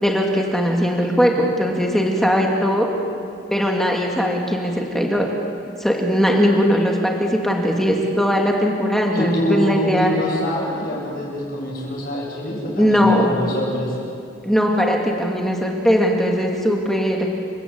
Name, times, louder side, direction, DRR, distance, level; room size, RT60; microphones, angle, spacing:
voice 1, 0.0-2.9 3.5-5.3 5.8-10.1 12.8-13.3 14.4-17.3, equal, ahead, 0 dB, 2.3 m, -19 dB
voice 2, 9.1-13.9, left 1 dB, 45° left, -3 dB, 7.8 m, -25 dB
30.0 x 15.0 x 8.8 m, 2.4 s
head